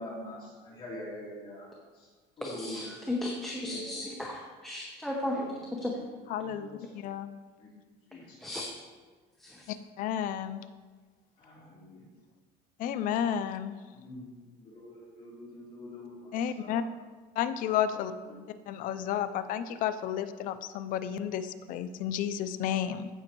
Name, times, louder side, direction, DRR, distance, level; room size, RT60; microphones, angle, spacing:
voice 1, 0.0-1.7 1.9-2.1 2.4-3.0 3.6-4.1 5.3-6.0 6.4-6.9 7.6-7.7 8.1-8.4 11.4-12.0 13.9-17.0 17.9-18.4, left 1 dB, 30° left, -7 dB, 3.1 m, -45 dB
voice 2, 2.4-5.4 5.8-6.0 8.4-8.7 9.4-9.7, left 1 dB, ahead, -2 dB, 0.8 m, -35 dB
voice 3, 6.3-7.3 9.7-10.6 12.8-13.7 16.3-16.8 17.4-18.1 18.7-23.1, left 9 dB, 50° left, 11 dB, 0.5 m, -32 dB
15.5 x 6.1 x 3.0 m, 1.4 s
cardioid pair, 165°, 18 cm